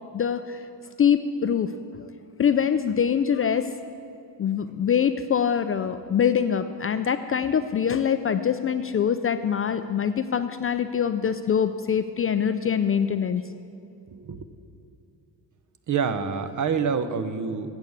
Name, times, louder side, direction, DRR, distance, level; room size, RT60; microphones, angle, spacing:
voice 1, 0.1-0.6 1.0-1.7 2.4-3.6 4.4-13.4, left 8 dB, 35° left, 10 dB, 0.4 m, -24 dB
voice 2, 15.9-17.7, right 6 dB, 45° right, 10 dB, 0.8 m, -26 dB
8.2 x 7.1 x 7.8 m, 2.5 s
supercardioid pair, 65°, 43 cm